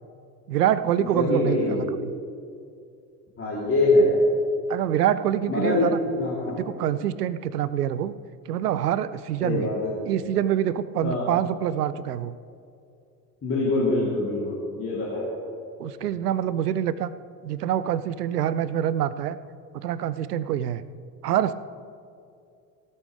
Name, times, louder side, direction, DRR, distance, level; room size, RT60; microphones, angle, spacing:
voice 1, 0.5-2.1 4.7-6.0 6.5-8.1 8.5-9.7 10.1-12.4 15.8-17.1 17.4-19.4 19.7-20.8 21.2-21.5, right 10 dB, 70° right, 15 dB, 0.6 m, -25 dB
voice 2, 1.1-1.8 3.4-4.2 5.5-5.9 6.2-6.6 9.4-9.9 11.0-11.3 13.4-15.3, left 2 dB, 25° left, -7 dB, 3.2 m, -24 dB
17.5 x 13.0 x 3.3 m, 2.4 s
figure-of-eight pair, 65°, 48 cm